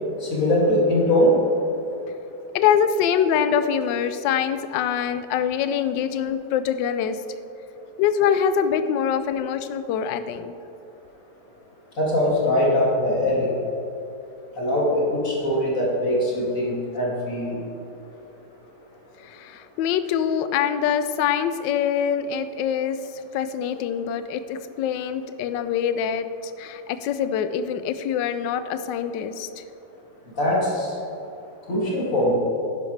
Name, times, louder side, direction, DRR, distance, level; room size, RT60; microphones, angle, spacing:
voice 1, 0.2-1.4 12.0-13.5 14.6-17.6 30.4-30.9 31.7-32.3, left 1 dB, 40° left, -5 dB, 2.8 m, -21 dB
voice 2, 2.5-7.2 8.0-10.5 19.2-23.0 23.3-26.3 26.6-29.5, left 8 dB, 70° left, 11 dB, 1.1 m, -24 dB
11.5 x 10.0 x 3.3 m, 2.9 s
omnidirectional pair, 2.4 m